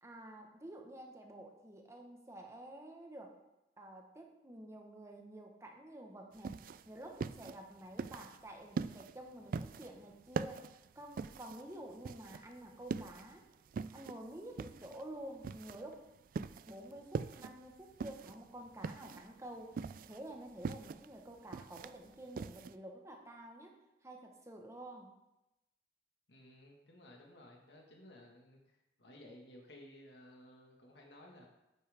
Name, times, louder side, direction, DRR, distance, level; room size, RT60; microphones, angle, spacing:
voice 1, 0.0-3.3 3.8-13.5 13.9-16.0 16.7-19.7 20.0-25.1, right 1 dB, 15° right, 2 dB, 1.1 m, -50 dB
sound 1, 6.3-22.7, right 5 dB, 50° right, 0.3 m, -43 dB
voice 2, 26.3-28.6 29.0-31.5, left 1 dB, 80° left, 0 dB, 1.6 m, -56 dB
9.1 x 8.6 x 3.5 m, 0.94 s
head